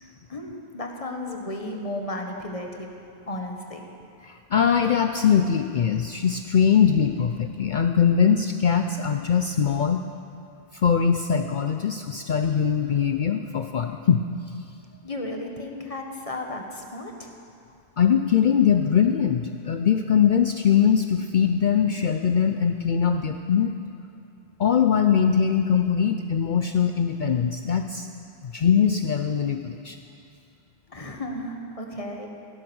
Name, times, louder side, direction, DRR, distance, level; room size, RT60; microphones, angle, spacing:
voice 1, 0.0-2.9 3.3-3.8 15.0-17.3 30.9-32.3, left 1 dB, 35° left, 2 dB, 1.4 m, -34 dB
voice 2, 4.2-10.0 10.7-14.2 18.0-23.7 24.6-28.1 28.4-30.0, left 7 dB, 55° left, 6 dB, 0.6 m, -22 dB
16.5 x 10.5 x 6.2 m, 2.6 s
omnidirectional pair, 1.1 m